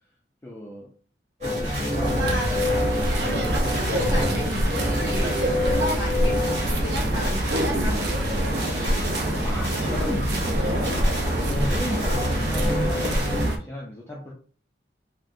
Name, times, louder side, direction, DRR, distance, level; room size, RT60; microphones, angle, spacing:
voice 1, 0.4-0.9 1.4-2.4 2.6-3.7 9.4-14.3, equal, 15° left, -3 dB, 0.4 m, -35 dB
sound 1, 1.4-13.5, left 1 dB, 40° right, 1.2 m, -27 dB
voice 2, 1.8-3.2 3.7-9.1, equal, 20° right, -4 dB, 1.4 m, -36 dB
sound 2, 2.0-13.6, right 1 dB, 70° right, 0.5 m, -26 dB
3.6 x 2.1 x 2.6 m, 0.43 s
head